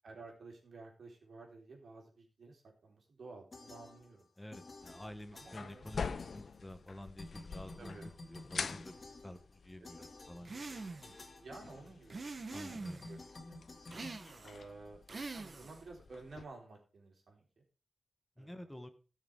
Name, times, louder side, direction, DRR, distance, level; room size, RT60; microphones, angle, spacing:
voice 1, 0.0-4.3 5.3-5.8 7.8-8.1 10.0-10.1 11.4-13.6 14.4-15.0 15.3-17.5 18.4-18.5, right 3 dB, 80° right, 0 dB, 3.7 m, -53 dB
sound 1, 3.5-4.3 4.5-6.9 7.2-15.0, left 2 dB, 40° left, 2.0 m, -52 dB
voice 2, 4.4-8.0 8.2-11.1 12.5-13.0 18.4-18.9, left 1 dB, 10° left, 8 dB, 1.2 m, -50 dB
sound 2, 4.8-16.4, left 5 dB, 75° left, 0.6 m, -47 dB
sound 3, 10.5-11.2 12.1-13.2 13.9-14.6 15.1-15.9, right 3 dB, 45° right, 0.9 m, -44 dB
17.0 x 6.6 x 3.6 m, 0.35 s
wide cardioid pair, 145°, 0 cm